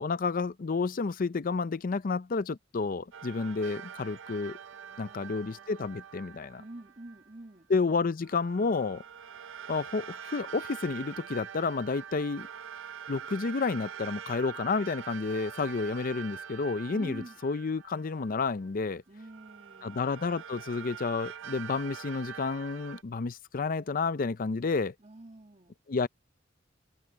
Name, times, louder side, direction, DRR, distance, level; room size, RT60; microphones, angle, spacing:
voice 1, 0.0-4.6 5.0-6.6 7.7-9.0 9.7-12.5 13.1-19.0 19.8-24.9 25.9-26.1, left 4 dB, 45° left, 0.5 m, -30 dB
sound 1, 3.1-7.3 8.2-18.7 19.2-23.0, right 8 dB, 80° right, 0.5 m, -45 dB
voice 2, 4.7-6.0 6.6-7.7 16.9-17.4 19.1-20.0 25.0-25.7, right 1 dB, 35° right, 2.3 m, -48 dB
head